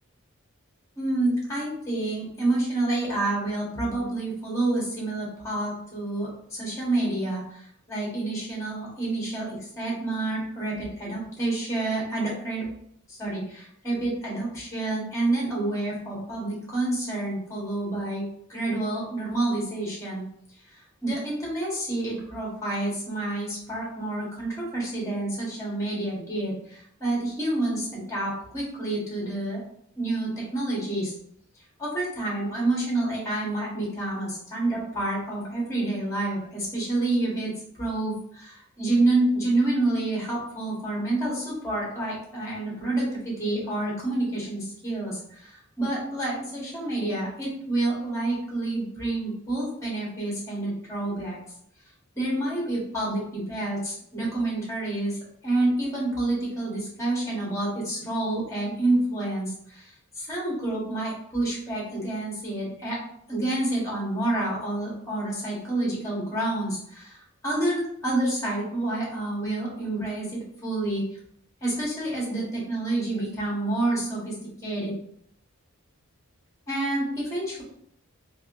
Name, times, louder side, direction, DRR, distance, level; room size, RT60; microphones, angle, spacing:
voice 1, 1.0-9.5 9.7-12.7 13.1-20.2 21.0-29.6 30.0-31.1 31.8-51.4 52.1-55.2 55.4-63.0 63.3-71.0 71.6-74.3 74.6-74.9 76.7-77.6, right 2 dB, 15° left, -5 dB, 1.3 m, -28 dB
3.5 x 2.6 x 2.5 m, 0.70 s
head